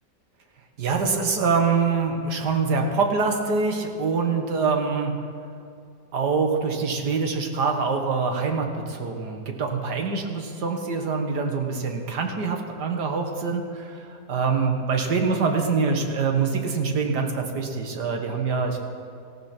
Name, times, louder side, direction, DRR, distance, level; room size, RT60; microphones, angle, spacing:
voice 1, 0.8-5.1 6.1-18.8, right 4 dB, 75° right, 3 dB, 2.0 m, -25 dB
18.5 x 14.5 x 4.4 m, 2.5 s
omnidirectional pair, 1.8 m